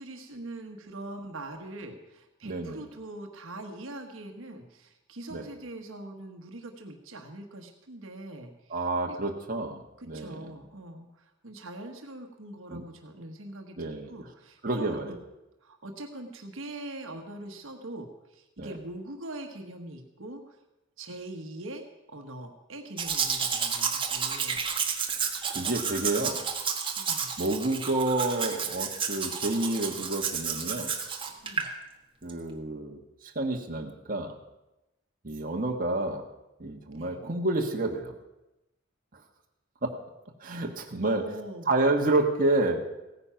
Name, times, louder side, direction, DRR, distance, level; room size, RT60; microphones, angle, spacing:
voice 1, 0.0-9.2 10.0-15.0 15.6-20.6 21.0-24.6 27.0-27.3 31.4-31.7 36.9-37.2 41.0-41.7, right 1 dB, 70° right, 4 dB, 1.3 m, -42 dB
voice 2, 2.4-2.8 5.3-5.5 8.7-10.5 12.7-12.8 13.8-14.1 14.6-15.2 18.6-18.7 25.5-26.4 27.4-30.9 32.2-34.3 35.2-36.2 36.6-38.1 39.8-39.9 40.4-41.2 41.7-42.8, right 2 dB, 45° right, 1 dB, 1.4 m, -29 dB
Domestic sounds home sounds, 23.0-31.7 32.3-32.4, right 6 dB, 25° right, 1.4 m, -31 dB
16.5 x 9.6 x 5.8 m, 0.96 s
head